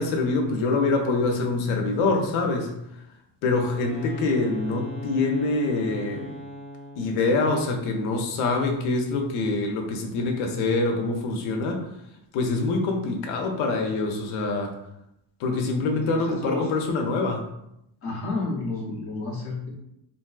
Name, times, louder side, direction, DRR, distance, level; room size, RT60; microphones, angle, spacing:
voice 1, 0.0-3.0 3.4-6.3 7.0-11.9 12.3-14.7 15.4-17.5, left 3 dB, 80° left, 2 dB, 0.7 m, -25 dB
Wind instrument woodwind instrument, 3.5-7.2, equal, 15° right, 0.4 m, -39 dB
voice 2, 15.9-16.7 18.0-19.8, left 3 dB, 30° left, -5 dB, 0.7 m, -31 dB
3.4 x 2.6 x 2.3 m, 0.83 s
cardioid pair, 180°, 50 cm